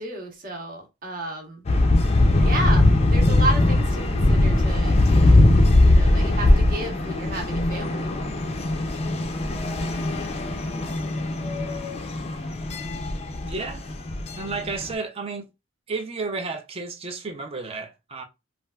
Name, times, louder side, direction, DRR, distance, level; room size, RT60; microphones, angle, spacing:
voice 1, 0.0-1.6 2.3-5.4 5.8-8.1, right 1 dB, 45° right, 1.0 m, -32 dB
sound 1, 1.7-14.9, left 2 dB, 30° left, 0.4 m, -20 dB
voice 2, 13.4-13.8 14.4-15.5 15.9-18.2, right 4 dB, 30° right, 0.5 m, -32 dB
3.2 x 2.4 x 2.3 m
head